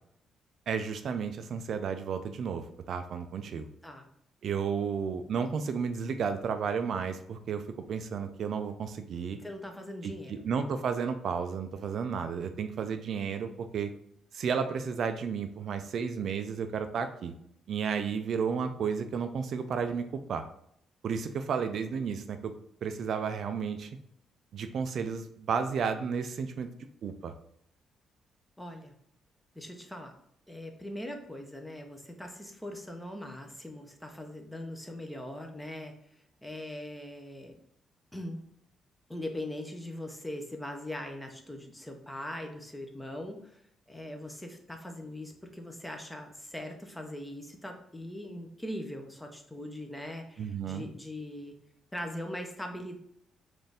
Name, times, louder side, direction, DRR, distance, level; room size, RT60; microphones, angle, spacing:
voice 1, 0.7-3.7 4.4-9.4 10.0-13.9 14.3-17.3 17.7-20.4 21.0-22.5 22.8-23.9 24.5-26.7 27.0-27.3 50.4-50.8, right 6 dB, 60° right, 8 dB, 0.3 m, -32 dB
voice 2, 9.4-10.4 28.6-28.9 29.5-30.1 30.5-37.6 38.1-38.4 39.1-43.6 43.9-51.5 51.9-52.9, left 1 dB, 10° left, 4 dB, 0.7 m, -41 dB
4.1 x 2.5 x 3.4 m, 0.70 s
cardioid pair, 90°, 0 cm